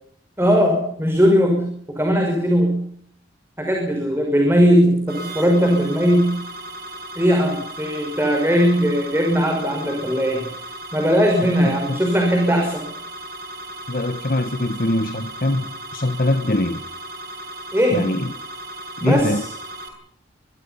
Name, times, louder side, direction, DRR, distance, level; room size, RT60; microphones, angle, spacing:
voice 1, 0.4-2.8 3.6-6.3 7.2-10.5 10.9-12.9 17.7-18.1 19.0-19.5, equal, 15° right, 5.9 m, -19 dB
sound 1, 5.1-19.9, right 1 dB, 55° right, 6.7 m, -36 dB
voice 2, 11.6-12.0 13.9-16.8 17.9-18.3 19.0-19.5, left 1 dB, 50° left, 1.4 m, -23 dB
26.5 x 22.5 x 5.8 m
head